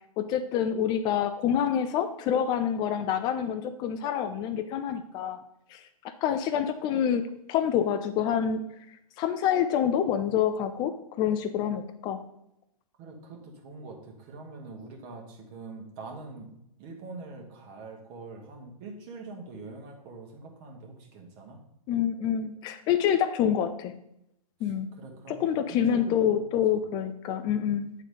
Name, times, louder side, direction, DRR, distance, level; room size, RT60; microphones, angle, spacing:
voice 1, 0.2-5.4 5.7-8.6 9.2-12.2 21.9-23.9 24.6-24.9 25.3-27.9, left 9 dB, 20° left, 10 dB, 0.4 m, -27 dB
voice 2, 13.0-16.5 16.8-21.6 24.6-24.7 25.0-26.6, right 3 dB, 35° right, 2 dB, 1.8 m, -44 dB
8.9 x 3.9 x 4.9 m, 0.78 s
hypercardioid pair, 130°, 20 cm